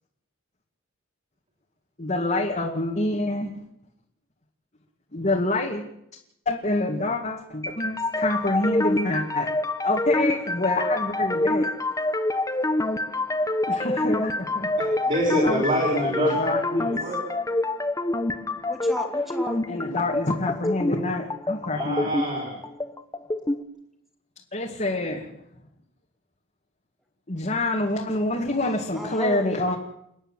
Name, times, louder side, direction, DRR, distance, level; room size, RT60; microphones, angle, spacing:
voice 1, 2.0-3.5 5.1-5.8 6.5-9.5 9.8-11.7 13.7-14.7 15.4-15.6 16.1-16.9 19.7-22.1 24.5-25.4 27.3-29.8, left 2 dB, 35° left, -1 dB, 2.2 m, -27 dB
sound 1, 7.6-23.6, left 2 dB, 15° left, 1.1 m, -26 dB
voice 2, 14.8-17.2 21.7-22.6, equal, 40° right, -3 dB, 6.0 m, -27 dB
voice 3, 18.7-20.0 28.9-29.7, equal, ahead, 3 dB, 3.0 m, -34 dB
29.5 x 10.0 x 9.1 m, 0.80 s
head